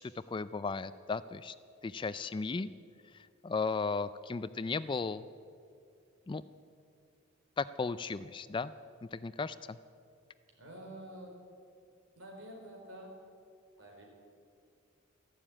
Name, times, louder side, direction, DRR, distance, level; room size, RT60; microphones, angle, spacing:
voice 1, 0.0-1.5 1.8-2.7 3.4-5.3 6.3-6.4 7.6-8.7 9.1-9.8, left 4 dB, 25° left, 15 dB, 0.3 m, -35 dB
voice 2, 10.6-11.3 12.2-13.2 13.8-14.0, right 1 dB, 80° right, 0 dB, 4.2 m, -48 dB
13.5 x 12.0 x 8.7 m, 2.4 s
head